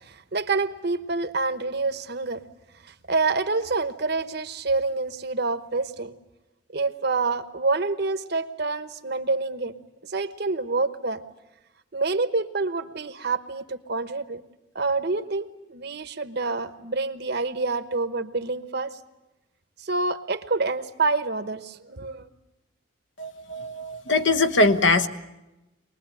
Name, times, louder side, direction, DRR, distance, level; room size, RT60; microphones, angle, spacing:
voice 1, 0.0-2.4 2.8-6.2 6.7-9.7 10.0-11.2 11.9-14.4 14.7-19.0 19.8-22.3, right 3 dB, 50° right, 11 dB, 1.0 m, -27 dB
voice 2, 23.2-25.1, left 2 dB, 65° left, 9 dB, 1.1 m, -22 dB
23.5 x 20.0 x 9.0 m, 1.0 s
head